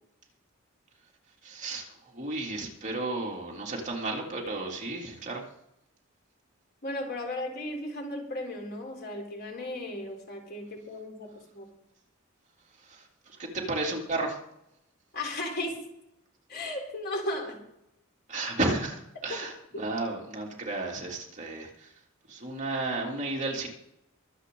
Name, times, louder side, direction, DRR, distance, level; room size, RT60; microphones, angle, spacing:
voice 1, 1.4-5.4 12.8-14.4 18.3-21.9 22.3-23.7, right 2 dB, 35° right, -1 dB, 3.1 m, -33 dB
voice 2, 6.8-11.7 15.1-15.8 16.5-17.6 19.3-19.4 19.7-19.8, left 1 dB, 50° left, 1 dB, 3.8 m, -35 dB
23.5 x 8.5 x 3.9 m, 0.81 s
head